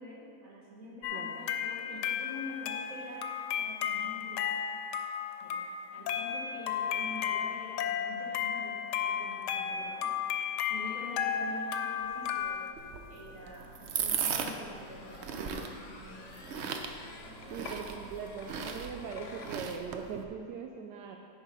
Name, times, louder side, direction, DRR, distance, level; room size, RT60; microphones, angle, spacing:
voice 1, 0.0-3.3 3.6-4.6 5.4-5.7 5.9-10.1 10.7-12.6 13.1-16.4 17.1-17.7, left 1 dB, 50° right, -5 dB, 2.1 m, -46 dB
sound 1, 1.0-12.7, left 8 dB, 80° left, 1.2 m, -34 dB
sound 2, 12.0-19.6, left 3 dB, 55° left, 1.0 m, -50 dB
sound 3, 12.8-20.2, right 6 dB, 70° right, 0.6 m, -38 dB
voice 2, 17.5-21.2, right 6 dB, 85° right, 2 dB, 1.2 m, -41 dB
9.6 x 4.9 x 5.4 m, 2.3 s
omnidirectional pair, 1.8 m